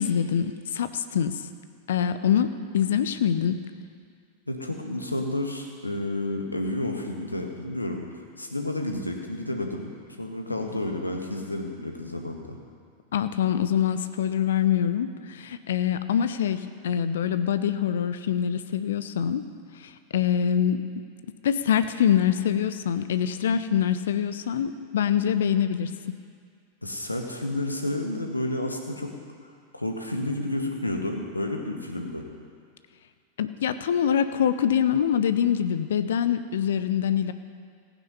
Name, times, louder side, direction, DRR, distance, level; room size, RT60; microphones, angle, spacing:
voice 1, 0.0-1.3 1.9-2.5 2.7-3.5 13.1-19.4 19.8-20.8 21.4-25.9 33.4-37.3, left 9 dB, 60° left, 11 dB, 0.6 m, -24 dB
voice 2, 4.5-8.1 8.4-12.6 26.8-29.2 29.4-32.2, left 1 dB, 85° left, 3 dB, 1.4 m, -31 dB
15.5 x 9.3 x 5.5 m, 2.1 s
figure-of-eight pair, 90°, 0 cm